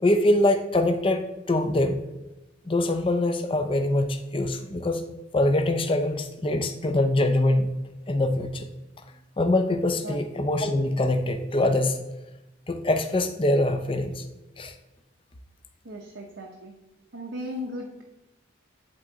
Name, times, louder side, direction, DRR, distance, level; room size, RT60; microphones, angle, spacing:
voice 1, 0.0-2.0 2.7-5.0 5.3-7.7 8.1-8.7 9.4-12.0 12.7-14.2 14.6-14.7, left 1 dB, 25° left, 7 dB, 0.5 m, -24 dB
voice 2, 15.8-16.7 17.1-18.0, equal, 60° right, 0 dB, 0.7 m, -36 dB
10.5 x 3.6 x 3.9 m, 0.99 s
head